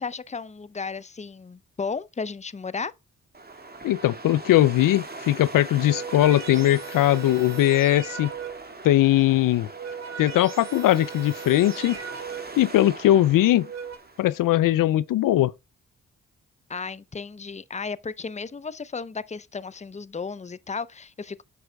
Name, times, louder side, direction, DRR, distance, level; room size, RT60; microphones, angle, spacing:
voice 1, 0.0-2.9 16.7-21.4, left 5 dB, 20° left, 0.6 m, -34 dB
sound 1, 3.3-14.5, right 3 dB, 30° right, 2.2 m, -41 dB
voice 2, 3.8-8.3 8.8-9.7 10.2-12.0 12.6-13.7 14.2-15.5, left 14 dB, 75° left, 0.5 m, -20 dB
sound 2, 4.5-4.9 5.6-8.8 9.5-12.7 13.4-14.0, right 7 dB, 55° right, 2.2 m, -38 dB
8.1 x 6.1 x 2.3 m
supercardioid pair, 45°, 33 cm